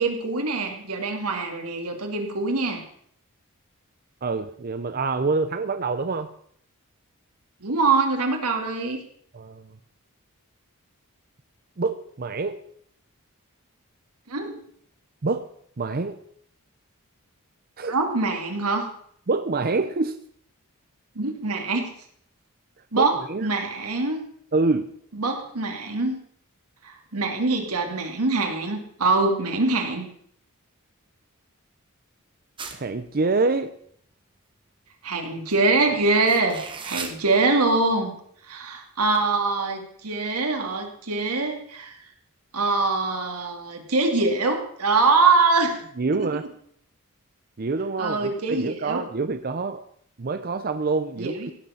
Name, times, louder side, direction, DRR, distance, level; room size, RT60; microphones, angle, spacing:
voice 1, 0.0-2.8 7.6-9.0 14.3-14.6 17.9-18.9 21.2-21.9 22.9-23.1 23.4-24.2 25.1-26.2 26.8-30.1 35.0-38.1 38.5-42.0 42.5-45.8 46.1-46.3 48.0-49.0 51.2-51.5, right 3 dB, 90° right, 4 dB, 2.5 m, -24 dB
voice 2, 4.2-6.3 9.3-9.8 11.8-12.6 15.2-15.5 15.8-16.2 17.8-18.0 19.3-20.2 22.9-23.5 24.5-24.9 32.7-33.7 46.0-46.5 47.6-49.8 50.2-51.5, right 3 dB, 40° right, 10 dB, 0.6 m, -26 dB
sound 1, 32.6-33.1 35.5-35.6 36.2-37.2, right 5 dB, 20° right, 1.5 m, -36 dB
16.5 x 6.7 x 7.1 m, 0.65 s
head